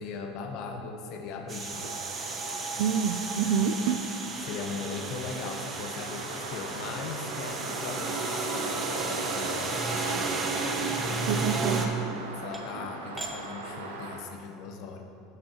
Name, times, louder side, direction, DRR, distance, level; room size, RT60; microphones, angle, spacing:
voice 1, 0.0-1.9 4.4-10.5 11.1-12.0 12.3-15.0, left 4 dB, 60° left, 3 dB, 1.1 m, -39 dB
sound 1, 1.5-11.9, right 4 dB, 30° right, 1.1 m, -33 dB
sound 2, 1.7-14.2, right 2 dB, 90° right, 1.1 m, -38 dB
voice 2, 2.8-4.1 4.4-4.5 11.3-11.9, right 7 dB, 70° right, 10 dB, 0.5 m, -27 dB
sound 3, 9.4-10.6 11.3-11.5 12.2-12.3 12.5-12.9 13.2-13.3 13.7-14.2, right 2 dB, 10° right, 1.2 m, -43 dB
12.0 x 7.7 x 3.0 m, 2.5 s
hypercardioid pair, 85°, 0 cm